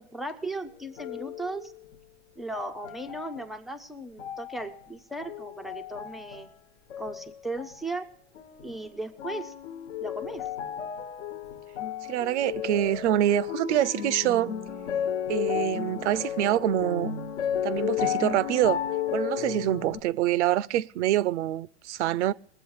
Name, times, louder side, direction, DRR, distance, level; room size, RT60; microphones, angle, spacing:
voice 1, 0.0-1.7 2.4-6.5 7.0-8.1 8.6-9.5 10.0-10.5, right 2 dB, ahead, 0.4 m, -36 dB
sound 1, 1.0-2.0 2.5-3.6 4.2-4.8 5.2-6.6 6.9-7.8 8.4-8.9 9.2-20.0, left 10 dB, 70° left, 1.2 m, -33 dB
voice 2, 12.1-14.5 15.3-17.1 17.6-18.8 19.1-22.3, right 13 dB, 70° right, 0.6 m, -25 dB
20.5 x 7.8 x 4.6 m
hypercardioid pair, 140°, 36 cm